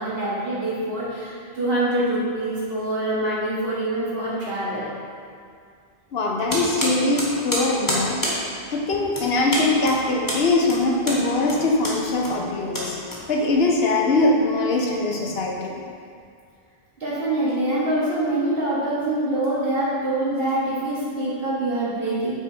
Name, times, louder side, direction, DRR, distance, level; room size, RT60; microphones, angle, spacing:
voice 1, 0.0-4.9 17.0-22.3, right 1 dB, 60° right, -8 dB, 1.8 m, -25 dB
voice 2, 6.1-8.2 8.7-13.0 13.3-15.8, left 2 dB, 65° left, -1 dB, 1.0 m, -22 dB
sound 1, 6.5-13.7, equal, 20° left, 1.1 m, -29 dB
6.0 x 4.1 x 4.3 m, 2.2 s
omnidirectional pair, 1.1 m